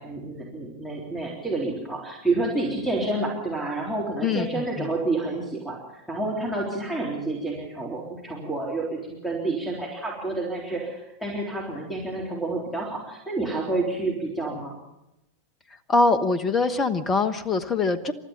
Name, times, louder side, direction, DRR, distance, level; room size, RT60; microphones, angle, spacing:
voice 1, 0.0-14.7, right 2 dB, 5° left, -1 dB, 3.8 m, -29 dB
voice 2, 4.2-4.9 15.9-18.1, left 3 dB, 20° left, 13 dB, 1.2 m, -23 dB
28.5 x 13.0 x 7.3 m, 0.91 s
figure-of-eight pair, 90°, 0 cm